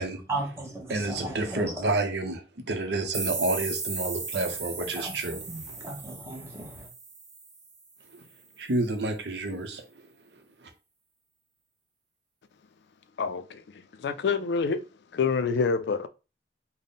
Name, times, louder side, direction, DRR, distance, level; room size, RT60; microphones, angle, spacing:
voice 1, 0.3-1.9 4.0-4.1 4.9-6.9, right 2 dB, 15° right, 0.9 m, -36 dB
voice 2, 0.9-2.4 2.7-5.4 8.6-9.8, right 2 dB, 75° right, 0.7 m, -29 dB
sound 1, 3.1-7.8, right 4 dB, 45° right, 1.3 m, -36 dB
voice 3, 13.2-14.8 15.1-16.1, left 5 dB, 75° left, 0.3 m, -27 dB
3.5 x 2.1 x 3.9 m
head